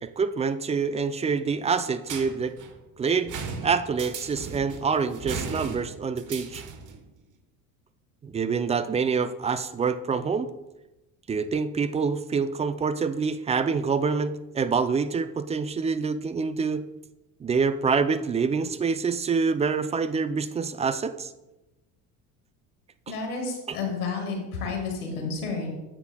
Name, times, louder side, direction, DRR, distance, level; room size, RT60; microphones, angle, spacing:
voice 1, 0.0-2.5 3.0-3.4 3.6-6.6 8.2-10.5 11.3-16.8 17.4-21.3 23.1-23.2 23.7-23.8, right 5 dB, 15° right, 12 dB, 0.4 m, -26 dB
sound 1, 2.1-7.0, right 5 dB, 45° right, 1.2 m, -37 dB
voice 2, 23.1-25.7, left 4 dB, 85° left, 2 dB, 1.9 m, -31 dB
9.7 x 7.9 x 2.2 m, 1.0 s
hypercardioid pair, 65°, 44 cm